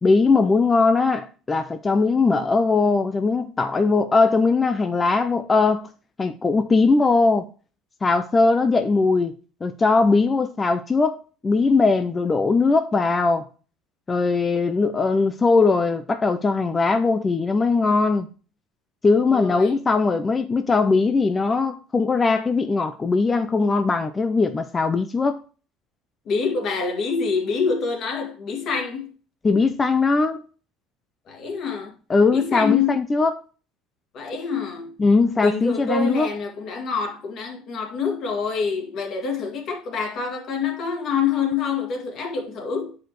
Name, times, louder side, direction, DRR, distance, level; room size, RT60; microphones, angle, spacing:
voice 1, 0.0-5.9 6.2-7.5 8.0-9.3 9.6-13.5 14.1-18.3 19.0-25.4 29.4-30.4 32.1-33.4 35.0-36.3, left 4 dB, 15° left, 0.5 m, -20 dB
voice 2, 19.3-19.8 26.3-29.1 31.3-31.9 32.3-33.0 34.1-34.9 35.4-43.0, left 5 dB, 45° left, 2.0 m, -26 dB
10.0 x 4.9 x 3.0 m
cardioid pair, 150°, 0 cm